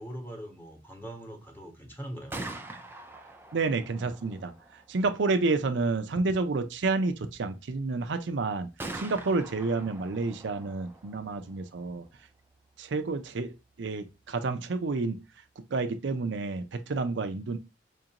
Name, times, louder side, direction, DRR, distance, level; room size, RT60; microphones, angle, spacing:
voice 1, 0.0-2.4, right 1 dB, 10° left, 1.1 m, -42 dB
Gunshot gunfire, 2.2-15.9, right 2 dB, 10° right, 0.4 m, -47 dB
voice 2, 3.5-8.7 8.9-12.0 12.8-15.2 15.7-17.6, right 3 dB, 70° right, 0.5 m, -30 dB
4.5 x 2.5 x 2.8 m
head